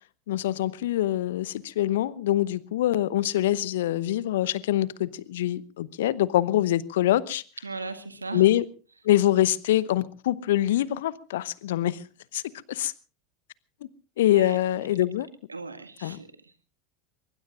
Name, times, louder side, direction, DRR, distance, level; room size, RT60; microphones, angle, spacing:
voice 1, 0.3-7.4 8.3-8.6 9.0-12.0 12.3-12.4 12.7-12.9 14.2-15.3 16.0-16.2, left 13 dB, 65° left, 21 dB, 0.9 m, -24 dB
voice 2, 7.6-8.4 14.3-14.6 15.5-16.5, right 3 dB, 85° right, 10 dB, 1.9 m, -37 dB
24.0 x 22.5 x 2.5 m, 0.36 s
figure-of-eight pair, 80°, 0 cm